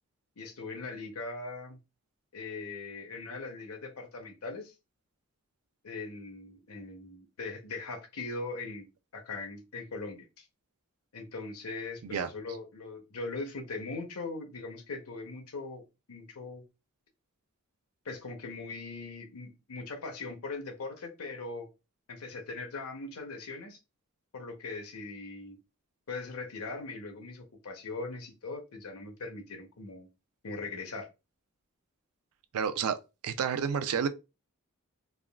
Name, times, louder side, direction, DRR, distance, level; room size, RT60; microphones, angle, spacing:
voice 1, 0.4-1.8 2.3-4.7 5.8-10.5 11.1-15.8 16.1-16.6 18.0-21.7 22.1-23.8 24.3-25.6 26.1-30.1 30.4-31.1, left 3 dB, 80° left, 0.7 m, -40 dB
voice 2, 32.5-33.0 33.2-34.1, right 7 dB, 85° right, 0.4 m, -30 dB
3.4 x 2.2 x 2.3 m
head